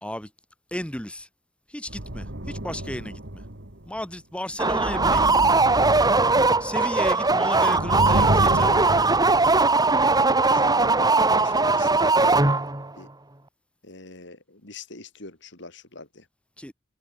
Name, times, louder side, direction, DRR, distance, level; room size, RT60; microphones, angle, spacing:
voice 1, 0.7-1.3 1.7-3.4 3.9-5.5 6.6-9.0 16.6-16.7, left 1 dB, 5° left, 2.6 m, -34 dB
sound 1, 1.9-4.0 4.5-7.2 7.6-10.0 10.8-10.9, right 1 dB, 65° right, 3.2 m, -30 dB
sound 2, 4.6-12.9, right 3 dB, 20° right, 2.2 m, -20 dB
voice 2, 7.6-8.3 10.5-12.5 12.9-13.1 13.8-16.3, left 3 dB, 65° left, 4.4 m, -43 dB
head